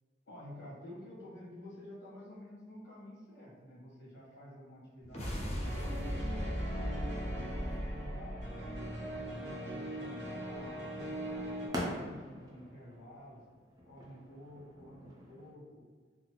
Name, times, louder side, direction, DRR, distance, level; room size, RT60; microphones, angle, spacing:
voice 1, 0.2-6.2 6.4-8.4 8.8-13.4 13.8-15.8, equal, 65° left, -7 dB, 1.4 m, -51 dB
sound 1, 5.0-9.5, equal, 35° left, 0.7 m, -38 dB
sound 2, 5.6-11.7, right 1 dB, 65° right, 0.6 m, -41 dB
sound 3, 9.8-15.5, equal, 20° right, 0.5 m, -45 dB
3.7 x 2.0 x 2.9 m, 1.5 s
head